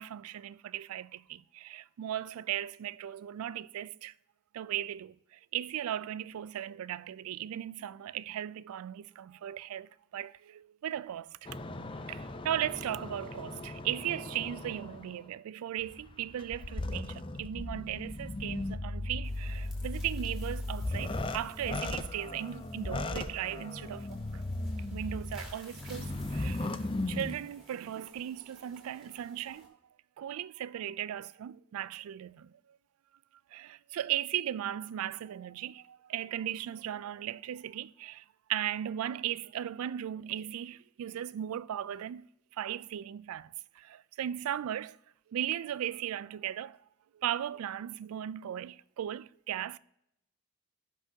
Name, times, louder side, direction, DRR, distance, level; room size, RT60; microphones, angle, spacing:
voice 1, 0.0-4.1 4.5-11.5 12.1-24.4 24.9-26.8 27.1-29.8 30.2-32.5 33.5-38.2 38.5-42.3 42.6-45.0 45.3-46.8 47.1-49.8, right 11 dB, 80° right, 0.3 m, -37 dB
sound 1, 11.5-15.2 15.8-27.4, left 2 dB, 25° left, 0.5 m, -37 dB
sound 2, 19.2-29.7, left 1 dB, ahead, 2.2 m, -57 dB
15.5 x 6.0 x 2.7 m
head